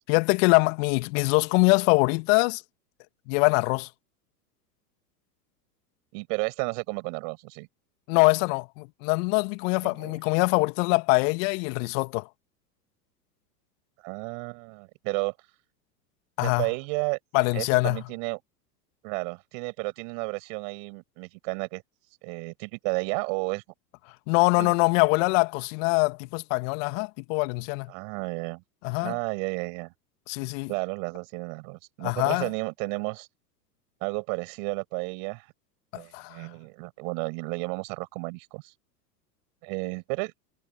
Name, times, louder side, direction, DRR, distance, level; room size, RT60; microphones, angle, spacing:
voice 1, 0.1-2.6 3.3-3.9 8.1-12.3 16.4-16.7 17.3-18.0 24.3-27.9 28.8-29.2 30.3-30.7 32.0-32.5 35.9-36.5, left 31 dB, 50° left, 2.2 m, -23 dB
voice 2, 6.1-7.7 9.8-10.2 14.0-15.3 16.4-17.2 17.5-18.4 19.0-21.8 22.2-23.6 24.6-24.7 27.9-28.6 29.0-29.9 30.7-33.3 34.0-35.5 35.9-38.7 39.6-40.3, right 40 dB or more, 50° right, 6.5 m, -32 dB
hypercardioid pair, 95°, 49 cm